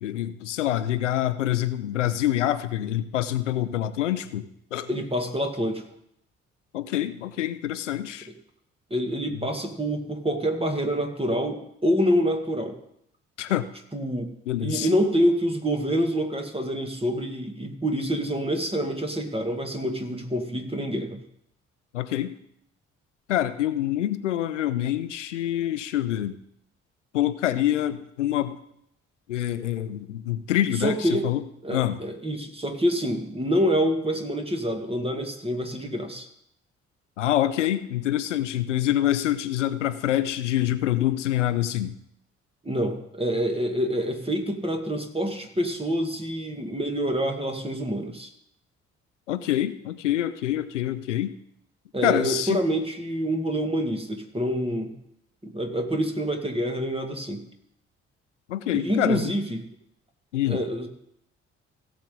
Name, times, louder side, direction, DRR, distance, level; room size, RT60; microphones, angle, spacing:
voice 1, 0.0-4.9 6.7-8.3 9.3-9.5 13.4-13.7 14.5-14.9 21.9-22.4 23.3-26.4 27.1-28.6 29.3-31.4 31.7-32.0 37.2-42.0 49.3-51.4 52.0-52.6 58.5-59.3 60.3-60.6, left 12 dB, 90° left, 13 dB, 0.6 m, -26 dB
voice 2, 4.9-5.8 8.9-12.8 13.9-14.3 14.6-21.2 30.8-31.3 31.6-36.3 42.6-48.3 51.9-54.9 55.4-57.4 58.7-59.6 60.5-60.9, equal, 15° right, 5 dB, 2.0 m, -26 dB
17.0 x 7.4 x 3.8 m, 0.73 s
hypercardioid pair, 45°, 35 cm